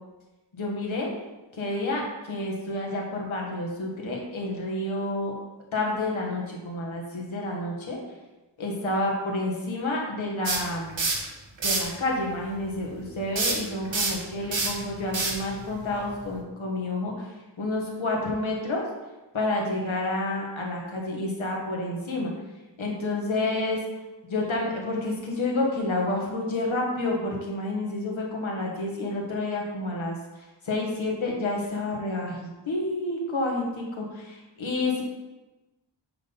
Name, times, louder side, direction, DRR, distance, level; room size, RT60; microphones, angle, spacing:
voice 1, 0.5-1.1 1.5-5.3 5.7-8.0 8.6-11.1 11.6-17.3 17.6-18.8 19.3-22.3 22.8-23.8 24.3-30.2 30.6-35.0, left 2 dB, 90° left, -2 dB, 1.9 m, -29 dB
sound 1, 10.5-11.3 11.6-11.9 13.4-16.4, right 3 dB, 80° right, 1.5 m, -27 dB
8.2 x 5.5 x 4.0 m, 1.1 s
wide cardioid pair, 105°, 46 cm